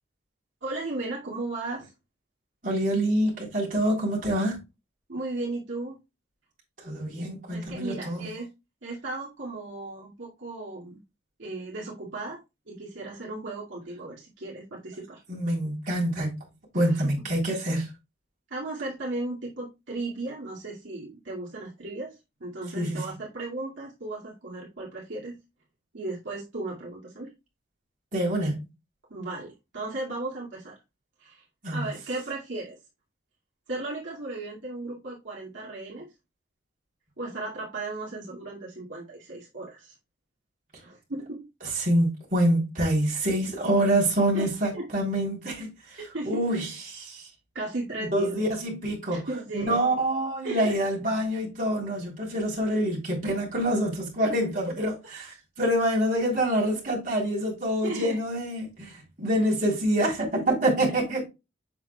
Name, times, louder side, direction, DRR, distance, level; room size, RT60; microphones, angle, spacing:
voice 1, 0.6-1.9 5.1-6.0 7.5-8.5 8.8-11.0 11.4-12.4 12.7-15.2 16.7-17.0 18.5-25.4 25.9-27.3 29.1-30.7 31.2-31.4 31.7-32.8 33.7-36.1 37.2-39.9 40.8-41.5 44.3-44.8 46.1-46.5 47.5-48.4 49.1-49.8 50.4-50.8 57.8-58.2, right 2 dB, 75° right, 2.1 m, -35 dB
voice 2, 2.6-4.6 6.8-8.3 15.3-16.4 16.7-17.9 22.7-23.1 28.1-28.6 31.6-31.8 41.8-46.0 46.3-47.3 48.0-49.3 49.5-54.9 55.6-61.3, right 1 dB, 45° right, 3.4 m, -26 dB
7.5 x 6.0 x 2.2 m
head